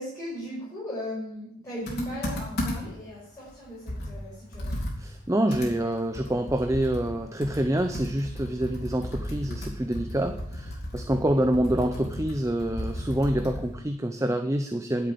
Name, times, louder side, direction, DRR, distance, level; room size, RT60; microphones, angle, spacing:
voice 1, 0.0-4.8 11.2-11.4, equal, 15° left, -9 dB, 5.4 m, -37 dB
Computer keyboard, 1.9-3.0 3.5-3.6 3.9-13.7, left 1 dB, 45° left, 3.9 m, -34 dB
voice 2, 5.0-15.1, right 1 dB, 15° right, 7 dB, 0.6 m, -27 dB
11.0 x 7.8 x 8.6 m, 0.69 s
head